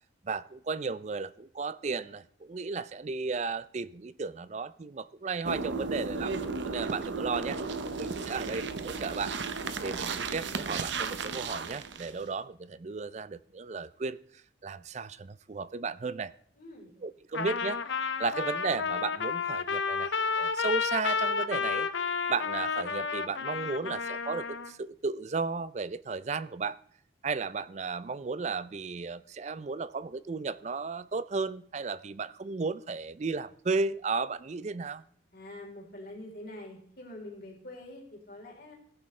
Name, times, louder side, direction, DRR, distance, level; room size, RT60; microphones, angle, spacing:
voice 1, 0.2-6.4 6.6-7.6 8.0-9.3 9.8-14.2 14.6-16.3 17.0-17.8 18.2-21.9 22.3-26.8 27.2-35.0, right 4 dB, 35° right, 0.4 m, -34 dB
sound 1, 5.4-12.2, right 4 dB, 70° right, 0.8 m, -34 dB
voice 2, 7.8-8.4 16.6-17.0 35.3-38.7, left 1 dB, 50° left, 3.7 m, -46 dB
Trumpet, 17.3-24.7, left 5 dB, 70° left, 0.7 m, -31 dB
16.5 x 10.0 x 3.2 m
head